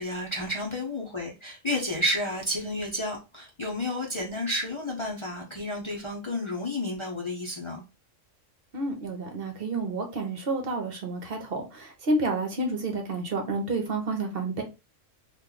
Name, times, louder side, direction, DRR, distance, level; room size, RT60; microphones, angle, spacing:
voice 1, 0.0-7.8, left 1 dB, 30° left, 0.6 m, -31 dB
voice 2, 8.7-14.6, right 2 dB, 55° right, 0.9 m, -30 dB
3.0 x 2.5 x 3.7 m
omnidirectional pair, 1.3 m